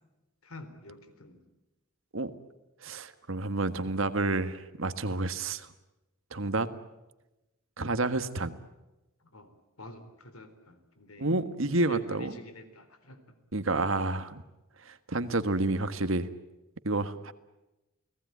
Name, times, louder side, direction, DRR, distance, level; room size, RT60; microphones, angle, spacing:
voice 1, 0.4-1.4 6.3-6.4 9.2-11.3 11.6-13.3, left 1 dB, 85° left, 10 dB, 3.9 m, -48 dB
voice 2, 2.8-5.7 6.3-6.7 7.8-8.5 11.2-12.3 13.5-14.4 14.8-16.3 16.8-17.3, right 2 dB, 65° right, 11 dB, 1.6 m, -29 dB
30.0 x 18.5 x 9.5 m, 1.0 s
head